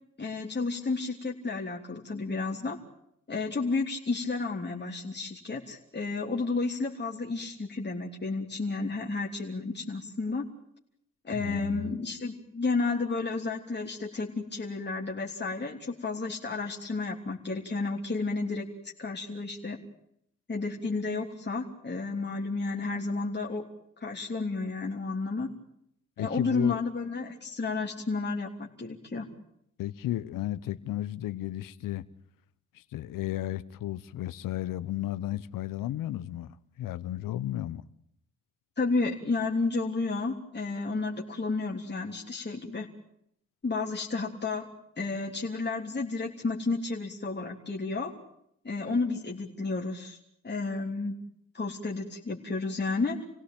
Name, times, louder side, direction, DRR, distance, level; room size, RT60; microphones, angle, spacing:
voice 1, 0.2-2.8 3.3-10.4 11.2-19.8 20.5-23.6 24.0-25.5 26.2-29.3 38.8-42.9 43.6-44.7 45.0-48.1 48.6-50.2 50.4-51.1 51.5-53.2, left 3 dB, 30° left, 3.3 m, -32 dB
voice 2, 11.3-11.9 26.2-26.9 29.8-32.0 32.7-37.8, left 13 dB, 80° left, 1.0 m, -34 dB
28.0 x 17.0 x 9.1 m
supercardioid pair, 50°, 32 cm